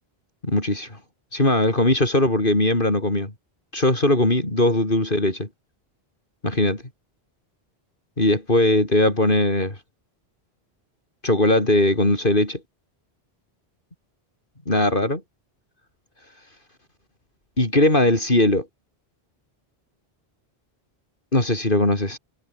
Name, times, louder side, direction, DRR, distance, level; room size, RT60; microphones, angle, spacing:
voice 1, 0.4-1.0 1.3-3.3 3.7-5.5 6.4-6.8 8.2-9.8 11.2-12.6 14.7-15.2 17.6-18.7 21.3-22.2, left 1 dB, 55° left, 5.0 m, -20 dB
omnidirectional pair, 1.0 m